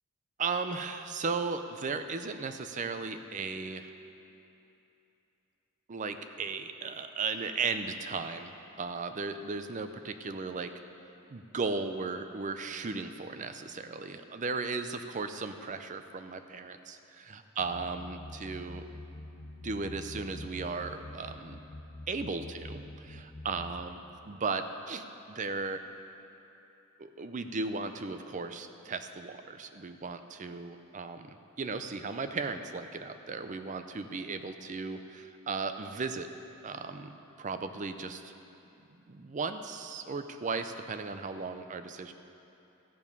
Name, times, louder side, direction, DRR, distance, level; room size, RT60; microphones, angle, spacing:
voice 1, 0.4-3.9 5.9-10.7 11.3-18.8 19.6-21.6 22.1-25.8 27.0-36.3 36.6-38.3 39.1-42.1, right 4 dB, 35° right, 9 dB, 0.5 m, -36 dB
sound 1, 17.6-23.8, left 1 dB, 40° left, 0.6 m, -45 dB
14.0 x 7.4 x 5.4 m, 2.9 s
head